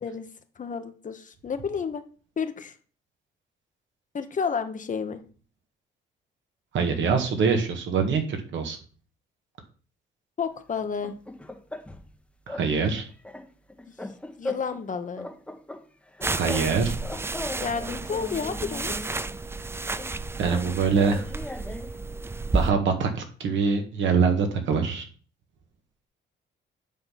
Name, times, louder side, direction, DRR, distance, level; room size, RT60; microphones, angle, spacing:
voice 1, 0.6-2.0 2.4-2.7 4.1-5.2 10.4-11.1 14.4-15.3 17.6-19.2, left 6 dB, 40° left, 9 dB, 1.0 m, -31 dB
voice 2, 6.7-8.8 12.5-13.1 16.2-16.9 20.4-21.2 22.5-25.0, right 5 dB, 70° right, 5 dB, 1.7 m, -24 dB
sound 1, 10.8-12.1 12.5-12.7 13.0-14.9 15.2-16.7 17.0-19.1 20.0-22.0, left 2 dB, 5° left, 1.0 m, -38 dB
sound 2, 16.2-22.7, right 3 dB, 10° right, 0.4 m, -32 dB
9.3 x 3.8 x 5.8 m, 0.40 s
cardioid pair, 90°, 20 cm